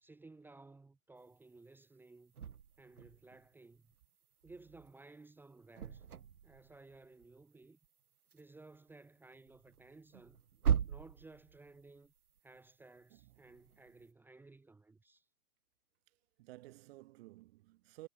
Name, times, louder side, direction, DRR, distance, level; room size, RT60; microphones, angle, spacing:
voice 1, 0.0-2.3 2.8-3.9 4.4-6.1 6.4-7.8 8.3-10.4 10.9-12.1 12.4-15.2, right 3 dB, 5° right, 1.2 m, -57 dB
sound 1, 1.2-1.3 2.3-5.0 5.3-8.0 8.3-8.4 8.7-13.1 13.4-14.1, right 8 dB, 70° right, 1.2 m, -40 dB
voice 2, 16.4-18.1, right 18 dB, 40° right, 5.1 m, -54 dB
figure-of-eight pair, 120°, 47 cm